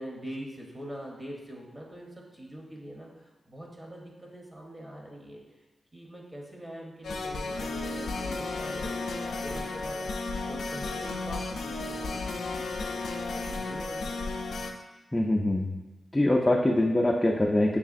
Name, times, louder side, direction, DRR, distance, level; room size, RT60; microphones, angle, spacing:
voice 1, 0.0-5.6 5.9-14.2 16.5-16.6, equal, 25° right, -1 dB, 0.9 m, -43 dB
sound 1, 7.0-14.7, left 3 dB, 85° left, 0.4 m, -33 dB
voice 2, 15.1-15.7 16.1-17.8, left 1 dB, 15° left, 0 dB, 0.4 m, -23 dB
6.2 x 3.3 x 2.5 m, 1.1 s
wide cardioid pair, 90°, 0 cm